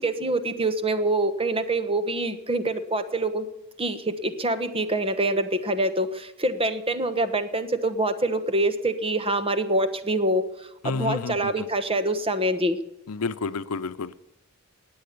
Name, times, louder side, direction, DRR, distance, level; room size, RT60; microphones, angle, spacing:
voice 1, 0.0-3.4 3.8-12.8, right 1 dB, 25° right, 10 dB, 1.2 m, -25 dB
voice 2, 10.8-11.7 13.1-14.2, left 4 dB, 90° left, 13 dB, 0.7 m, -30 dB
20.0 x 7.8 x 6.8 m, 0.94 s
head